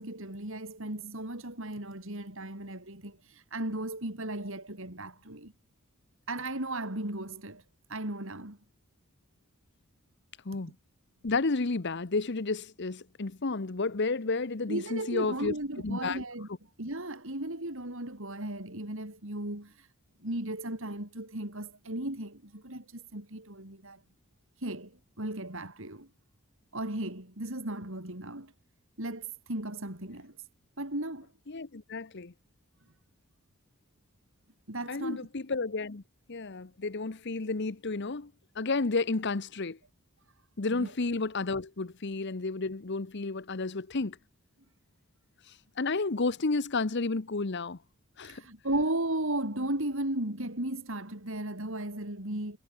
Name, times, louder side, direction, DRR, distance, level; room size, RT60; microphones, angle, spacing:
voice 1, 0.0-5.5 6.3-7.6 7.9-8.6 14.7-16.5 16.8-19.9 20.2-24.0 24.6-26.1 26.7-28.5 29.0-30.5 30.8-31.3 34.7-35.2 40.7-40.9 48.2-52.6, right 1 dB, 60° right, 4.4 m, -36 dB
voice 2, 11.2-15.5 15.8-16.2 31.5-32.3 34.9-36.0 36.3-38.3 38.6-39.8 40.6-44.2 45.8-47.8 48.2-48.4, left 3 dB, 50° left, 0.9 m, -31 dB
head